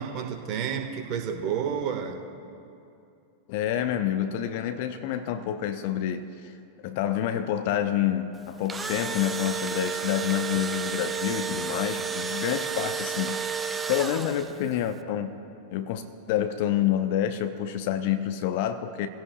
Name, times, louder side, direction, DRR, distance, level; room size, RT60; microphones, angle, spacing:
voice 1, 0.0-2.2, right 7 dB, 40° right, 4 dB, 1.7 m, -30 dB
voice 2, 3.5-6.3 6.8-13.5 13.9-15.4 15.7-19.1, left 10 dB, 50° left, 8 dB, 0.8 m, -28 dB
Engine / Drill, 8.4-14.7, right 6 dB, 15° right, 0.6 m, -32 dB
30.0 x 16.0 x 2.4 m, 2.7 s
figure-of-eight pair, 90°, 0 cm